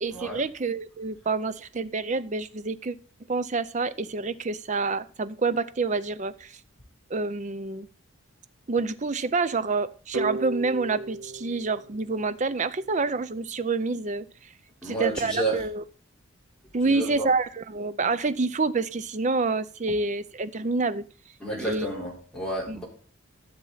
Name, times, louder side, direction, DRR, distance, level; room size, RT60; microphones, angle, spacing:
voice 1, 0.0-3.0 3.3-6.6 7.1-7.9 8.7-14.3 14.8-15.8 16.7-21.0 21.6-21.9 22.7-22.8, right 3 dB, 35° right, 13 dB, 0.5 m, -27 dB
sound 1, 10.1-12.9, right 2 dB, 70° right, 0.9 m, -35 dB
voice 2, 14.8-15.6 16.8-17.3 21.4-22.8, right 2 dB, 5° left, -4 dB, 4.0 m, -30 dB
13.0 x 7.0 x 4.0 m, 0.41 s
head